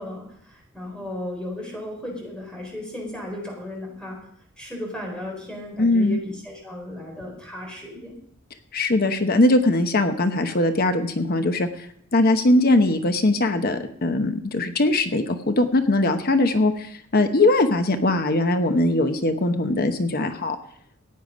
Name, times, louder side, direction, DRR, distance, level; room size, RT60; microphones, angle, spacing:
voice 1, 0.0-4.2 4.6-8.2, left 1 dB, 5° left, -1 dB, 4.3 m, -35 dB
voice 2, 5.8-6.2 8.7-11.7 12.1-20.6, left 2 dB, 50° left, 8 dB, 0.9 m, -20 dB
15.0 x 9.3 x 5.1 m, 0.67 s
head